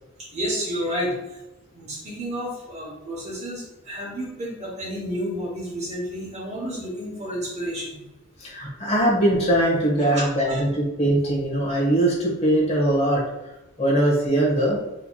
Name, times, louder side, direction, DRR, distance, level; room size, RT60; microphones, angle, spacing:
voice 1, 0.3-1.1 1.7-8.0 10.0-10.6, equal, 35° right, -3 dB, 1.1 m, -31 dB
voice 2, 8.4-13.2 13.8-14.8, right 1 dB, 30° left, -4 dB, 1.0 m, -21 dB
4.4 x 2.9 x 2.3 m, 0.97 s
head